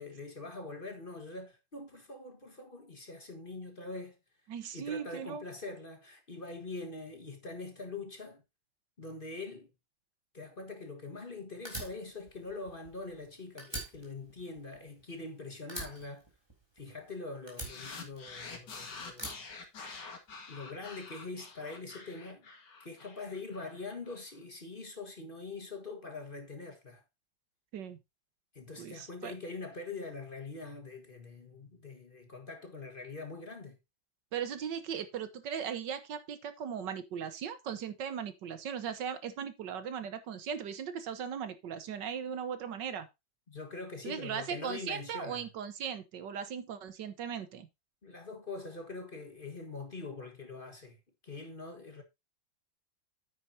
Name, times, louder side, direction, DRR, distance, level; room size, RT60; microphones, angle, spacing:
voice 1, 0.0-4.2 4.7-8.4 9.0-9.7 10.3-16.2 16.8-19.4 20.5-22.5 22.8-27.0 28.5-33.8 43.5-45.5 48.0-52.0, left 3 dB, 30° left, 1.6 m, -43 dB
voice 2, 4.5-5.4 27.7-28.0 28.8-29.3 34.3-43.1 44.0-47.7, right 7 dB, 70° right, 1.6 m, -38 dB
Fire, 11.7-13.3 13.6-15.3 15.7-17.0 17.5-18.6 19.1-20.3, right 2 dB, 15° right, 3.6 m, -44 dB
sound 1, 17.6-24.2, left 4 dB, 65° left, 2.5 m, -47 dB
9.2 x 9.2 x 2.7 m
omnidirectional pair, 2.0 m